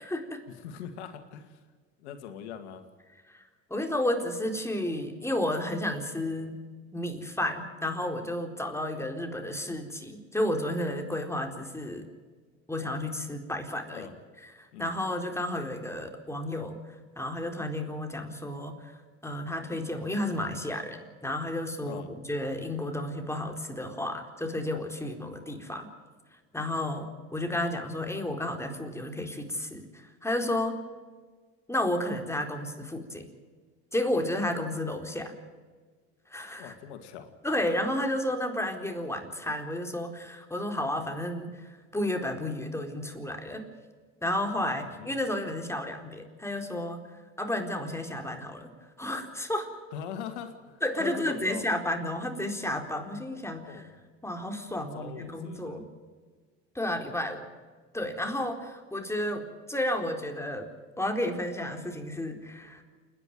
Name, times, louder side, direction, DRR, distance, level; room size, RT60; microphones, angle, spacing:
voice 1, 0.0-0.4 3.3-3.4 3.7-6.6 6.9-12.0 12.7-14.1 14.6-16.8 17.2-19.0 19.2-25.9 26.5-30.8 31.7-33.3 33.9-35.3 36.3-36.7 37.4-43.6 44.2-47.1 47.4-48.7 49.0-49.7 50.8-53.9 54.2-55.9 56.7-57.5 57.9-60.7 61.0-62.8, left 1 dB, 10° left, 4 dB, 4.2 m, -32 dB
voice 2, 0.6-1.6 2.0-2.8 13.9-14.1 14.7-14.9 21.8-22.1 36.6-37.3 44.8-45.1 49.9-51.6 53.6-53.9 54.8-55.8, left 8 dB, 90° left, 8 dB, 2.2 m, -41 dB
29.0 x 10.5 x 9.2 m, 1.5 s
supercardioid pair, 75°, 33 cm